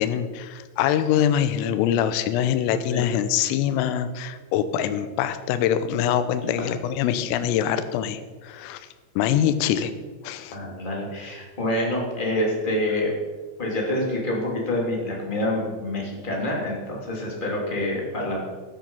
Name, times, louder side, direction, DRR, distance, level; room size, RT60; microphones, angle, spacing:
voice 1, 0.0-8.9 9.2-9.9 10.2-10.6, left 10 dB, 85° left, 11 dB, 3.4 m, -24 dB
voice 2, 10.5-13.1 13.6-18.4, left 1 dB, 15° left, -2 dB, 1.6 m, -27 dB
13.5 x 10.5 x 5.6 m, 1.4 s
omnidirectional pair, 5.9 m